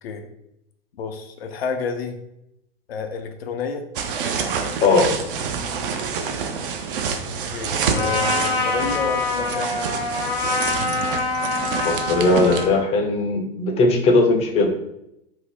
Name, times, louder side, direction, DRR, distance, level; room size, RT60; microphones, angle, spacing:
voice 1, 0.9-2.2 2.9-3.8 7.2-10.0, left 5 dB, 80° left, 6 dB, 0.5 m, -30 dB
sound 1, 4.0-12.7, right 6 dB, 65° right, 0.4 m, -27 dB
Trumpet, 7.9-12.9, left 3 dB, 60° left, 0.9 m, -25 dB
voice 2, 11.8-14.7, left 2 dB, 20° left, 3 dB, 0.4 m, -18 dB
2.6 x 2.0 x 3.4 m, 0.82 s
hypercardioid pair, 100°, 30 cm